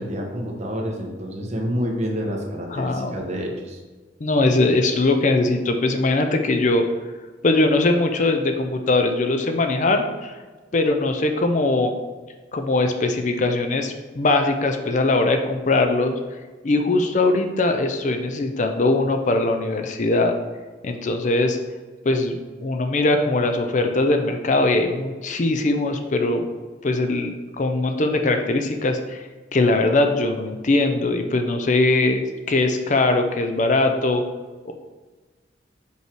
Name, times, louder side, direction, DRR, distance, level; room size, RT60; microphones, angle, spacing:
voice 1, 0.0-3.8, equal, 35° right, 0 dB, 1.1 m, -28 dB
voice 2, 2.7-3.2 4.2-6.9 7.4-10.3 10.7-11.9 12.5-16.1 16.6-20.4 20.8-21.6 22.1-26.5 26.8-29.2 29.5-34.2 34.6-34.7, left 2 dB, 40° left, 6 dB, 0.5 m, -21 dB
5.5 x 4.7 x 4.5 m, 1.3 s
head